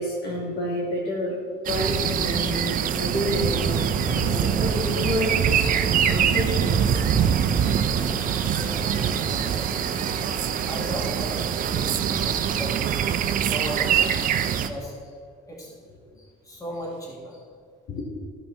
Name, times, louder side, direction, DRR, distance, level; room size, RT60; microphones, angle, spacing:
voice 1, 0.0-1.4 1.6-6.8 15.9-16.0 17.9-18.0, left 1 dB, 75° left, -4 dB, 2.8 m, -29 dB
sound 1, 1.7-14.7, right 8 dB, 55° right, 0.6 m, -24 dB
sound 2, 3.4-11.1, left 2 dB, 40° left, 1.1 m, -39 dB
voice 2, 8.6-9.9 10.3-12.8 13.3-15.1 15.5-15.7 16.2-17.4, equal, 20° left, -3 dB, 2.7 m, -37 dB
14.0 x 5.5 x 4.4 m, 2.1 s
cardioid pair, 110°, 17 cm